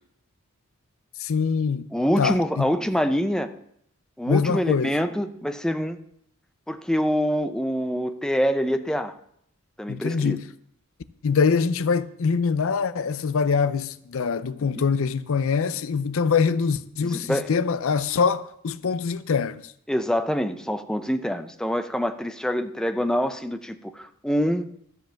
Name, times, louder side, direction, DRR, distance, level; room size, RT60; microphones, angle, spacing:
voice 1, 1.2-1.9 2.2-2.7 4.3-4.9 9.9-10.4 11.2-19.6, left 5 dB, 65° left, 0.5 m, -24 dB
voice 2, 1.9-3.5 4.2-6.0 6.7-9.2 9.8-10.4 14.7-14.8 17.0-17.5 19.9-24.7, equal, 5° left, 0.5 m, -25 dB
13.0 x 5.3 x 7.5 m
head